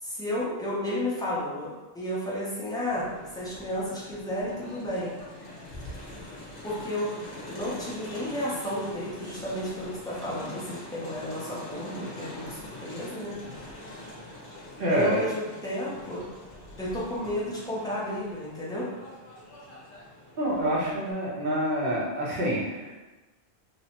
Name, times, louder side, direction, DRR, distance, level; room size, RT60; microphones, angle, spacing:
voice 1, 0.0-5.1 6.6-7.1 7.5-13.4 14.9-16.3 16.8-18.9, left 1 dB, 5° left, -7 dB, 0.4 m, -32 dB
Crowd, 2.9-21.1, left 1 dB, 60° left, 0.9 m, -44 dB
voice 2, 14.8-15.2 20.4-22.9, equal, 60° right, -6 dB, 1.0 m, -27 dB
3.1 x 2.0 x 2.8 m, 1.2 s
omnidirectional pair, 1.1 m